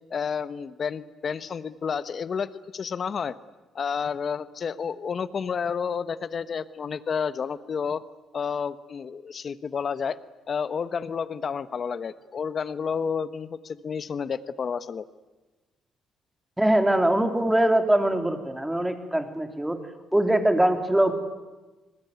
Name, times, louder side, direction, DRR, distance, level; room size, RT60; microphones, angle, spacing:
voice 1, 0.1-3.3 3.7-8.0 8.3-10.2 10.5-15.0, left 6 dB, 50° left, 14 dB, 1.2 m, -30 dB
voice 2, 16.6-19.8 20.1-21.1, right 1 dB, 10° right, 7 dB, 3.4 m, -22 dB
27.5 x 20.5 x 9.6 m, 1.2 s
cardioid pair, 90°, 0 cm